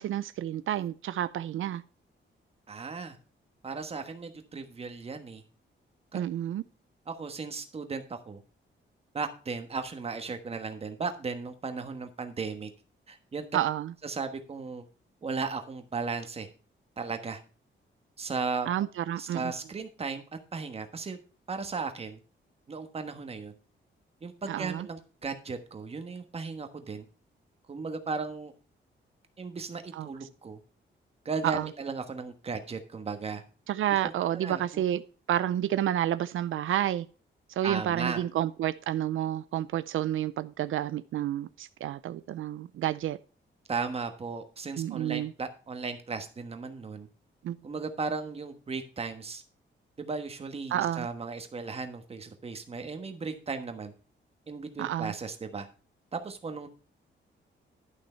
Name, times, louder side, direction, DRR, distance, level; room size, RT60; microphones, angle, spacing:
voice 1, 0.0-1.8 6.1-6.6 13.5-13.9 18.7-19.5 24.5-24.9 29.9-30.1 31.4-31.7 33.7-35.0 35.3-37.1 37.5-43.2 44.8-45.3 47.4-47.6 50.7-51.1 54.8-55.1, right 11 dB, 85° right, 0.5 m, -30 dB
voice 2, 2.7-3.2 3.6-5.4 6.1-6.2 7.1-8.4 9.1-12.7 13.1-13.4 14.0-14.8 15.2-16.5 17.0-17.4 18.2-18.7 19.2-20.2 20.5-21.2 21.5-22.2 22.7-23.5 24.2-27.0 27.7-28.5 29.4-30.6 31.2-33.4 34.0-34.8 37.6-38.2 43.7-47.1 47.6-49.4 50.0-53.9 54.5-55.7 56.1-56.7, right 4 dB, 30° right, 1.3 m, -36 dB
11.5 x 6.2 x 4.4 m
wide cardioid pair, 170°, 20 cm